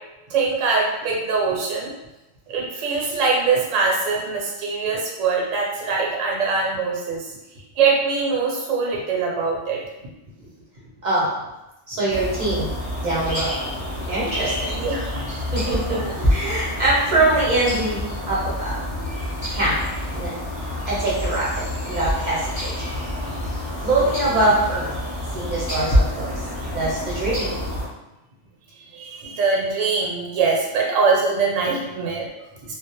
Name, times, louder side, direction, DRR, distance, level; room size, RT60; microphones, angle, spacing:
voice 1, 0.3-1.9 2.5-7.3 7.8-9.8 14.4-15.2 15.9-16.3 28.8-32.3, right 4 dB, 80° right, -2 dB, 0.9 m, -23 dB
voice 2, 11.9-12.7 13.0-13.6 14.1-14.9 15.5-18.8 19.5-19.8 20.1-20.3 20.8-22.9 23.8-25.0 25.3-26.4 26.7-27.5, right 2 dB, 50° right, -7 dB, 0.6 m, -23 dB
sound 1, 12.1-27.9, left 1 dB, 35° left, 0.9 m, -27 dB
2.2 x 2.0 x 2.8 m, 0.98 s
omnidirectional pair, 1.3 m